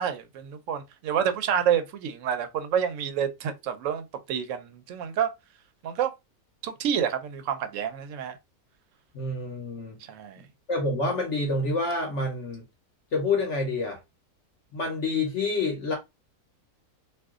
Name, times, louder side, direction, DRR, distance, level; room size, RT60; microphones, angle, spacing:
voice 1, 0.0-5.3 5.8-6.1 6.6-8.4 10.0-10.4, right 8 dB, 70° right, 0.8 m, -28 dB
voice 2, 9.1-10.0 10.7-12.6 13.1-14.0 14.7-16.0, left 3 dB, 55° left, 1.0 m, -27 dB
2.6 x 2.3 x 3.5 m
omnidirectional pair, 1.6 m